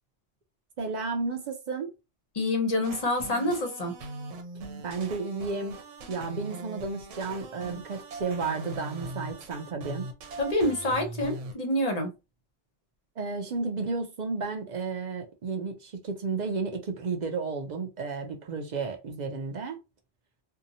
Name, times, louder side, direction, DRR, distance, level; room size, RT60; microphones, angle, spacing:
voice 1, 0.8-1.9 4.8-10.1 13.2-19.8, right 4 dB, 55° right, 0.5 m, -32 dB
voice 2, 2.3-4.0 10.4-12.1, left 1 dB, 40° left, 0.7 m, -27 dB
sound 1, 2.8-11.6, right 2 dB, 90° right, 0.9 m, -40 dB
2.7 x 2.2 x 2.6 m
omnidirectional pair, 1.2 m